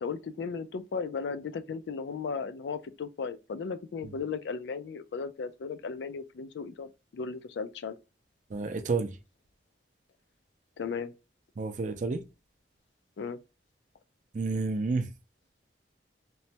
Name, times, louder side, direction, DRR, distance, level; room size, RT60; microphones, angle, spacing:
voice 1, 0.0-8.0 10.8-11.1 13.2-13.4, left 5 dB, 70° left, 0.3 m, -36 dB
voice 2, 8.5-9.2 11.6-12.2 14.3-15.1, right 3 dB, 40° right, 0.4 m, -30 dB
3.0 x 2.1 x 2.7 m
head